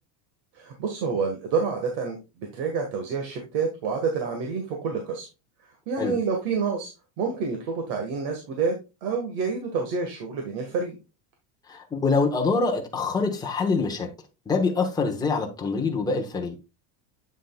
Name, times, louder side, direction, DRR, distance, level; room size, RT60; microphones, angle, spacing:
voice 1, 0.5-5.3 5.6-6.9 7.2-8.7 9.0-11.0, right 5 dB, 50° right, 1.7 m, -28 dB
voice 2, 11.7-14.1 14.5-16.5, left 4 dB, 10° left, 1.0 m, -25 dB
8.3 x 7.4 x 2.3 m
cardioid pair, 165°, 50 cm